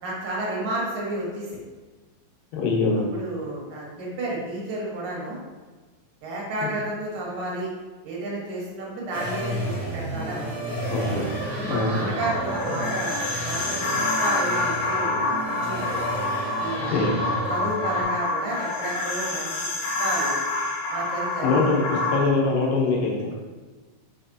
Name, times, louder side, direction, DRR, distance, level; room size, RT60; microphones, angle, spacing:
voice 1, 0.0-1.6 3.1-5.4 6.2-7.7 8.0-10.9 11.5-13.2 13.5-15.9 16.6-16.9 17.5-19.5 20.0-20.4 20.9-21.9, right 2 dB, 85° right, -4 dB, 3.3 m, -31 dB
voice 2, 2.5-3.0 10.9-11.2 11.7-12.1 16.9-17.1 21.4-21.8 22.1-23.3, left 3 dB, 80° left, -2 dB, 2.7 m, -23 dB
sound 1, 9.1-18.0, right 1 dB, 35° right, 1.4 m, -31 dB
sound 2, 12.2-22.2, left 2 dB, 60° left, 2.1 m, -27 dB
6.2 x 5.9 x 2.8 m, 1.3 s
omnidirectional pair, 3.8 m